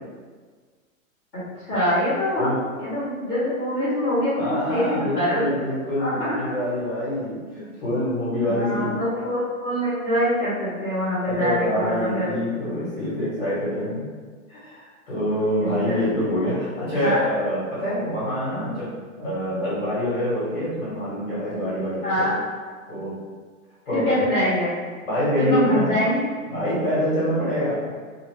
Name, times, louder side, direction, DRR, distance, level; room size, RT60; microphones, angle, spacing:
voice 1, 1.3-2.5 2.8-6.3 8.4-12.3 15.6-16.1 17.0-17.2 22.0-22.4 23.9-24.7 25.4-26.2, equal, ahead, -26 dB, 0.9 m, -24 dB
voice 2, 4.4-9.0 11.2-14.1 14.5-22.3 22.9-23.1 23.9-24.1 25.1-26.0 26.5-27.9, equal, 40° left, -9 dB, 1.2 m, -26 dB
2.7 x 2.6 x 3.2 m, 1.5 s
hypercardioid pair, 180°, 43 cm